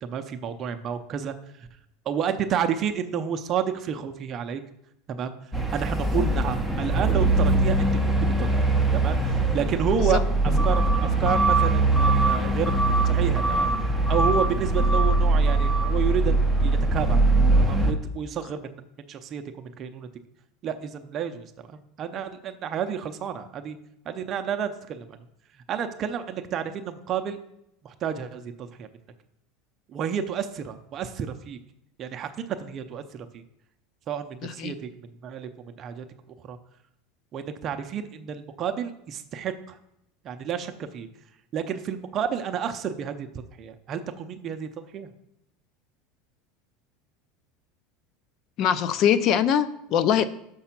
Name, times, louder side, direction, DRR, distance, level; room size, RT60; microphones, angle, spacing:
voice 1, 0.0-1.7 2.1-4.6 5.1-5.3 5.7-12.8 13.1-13.7 14.1-17.2 17.6-18.8 19.1-20.1 20.6-23.8 24.1-25.2 25.7-27.4 27.8-28.9 29.9-31.6 32.0-33.0 33.3-33.4 34.1-36.0 36.5-36.6 37.3-39.8 40.2-41.1 41.5-43.3 43.6-45.1, right 8 dB, 35° right, 7 dB, 0.6 m, -30 dB
sound 1, 5.5-17.9, right 2 dB, 5° left, 0.8 m, -22 dB
voice 2, 34.4-34.7 48.6-50.3, left 9 dB, 45° left, 16 dB, 0.5 m, -22 dB
6.7 x 5.4 x 5.8 m, 0.80 s
supercardioid pair, 145°, 0 cm